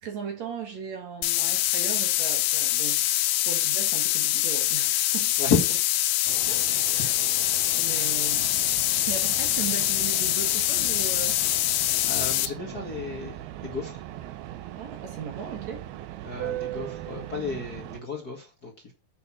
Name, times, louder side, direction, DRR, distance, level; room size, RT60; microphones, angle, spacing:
voice 1, 0.0-5.3 6.4-7.1 7.8-8.5 9.1-11.4 14.7-15.9, right 6 dB, 55° right, 2.4 m, -37 dB
sound 1, 1.2-12.5, left 15 dB, 85° left, 2.7 m, -24 dB
voice 2, 5.4-5.8 6.7-6.9 7.9-8.2 12.0-14.0 16.2-18.9, left 5 dB, 35° left, 1.7 m, -32 dB
sound 2, 6.3-18.0, right 13 dB, 85° right, 2.8 m, -39 dB
8.4 x 6.5 x 6.1 m
omnidirectional pair, 4.4 m